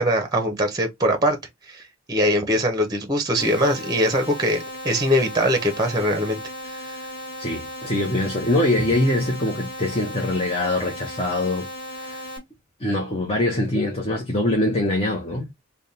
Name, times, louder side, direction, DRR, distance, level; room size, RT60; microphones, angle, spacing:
voice 1, 0.0-1.4 1.7-1.8 2.1-6.4 6.7-6.8, equal, 20° right, 0.7 m, -22 dB
sound 1, 3.4-12.4, equal, 45° left, 1.7 m, -36 dB
voice 2, 7.4-11.7 12.0-12.2 12.8-15.5, left 1 dB, 30° left, 0.9 m, -23 dB
3.5 x 2.2 x 4.0 m
head